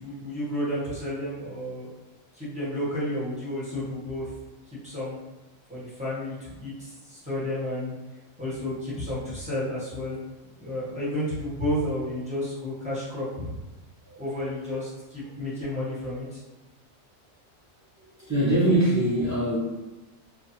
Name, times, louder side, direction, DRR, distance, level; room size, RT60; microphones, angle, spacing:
voice 1, 0.0-1.9 2.3-4.3 4.8-5.2 5.7-7.9 8.4-10.2 10.6-13.5 14.2-16.4, left 1 dB, 5° right, -10 dB, 0.9 m, -31 dB
voice 2, 18.2-19.6, right 1 dB, 20° right, -9 dB, 0.4 m, -23 dB
2.7 x 2.2 x 2.8 m, 1.1 s
omnidirectional pair, 1.4 m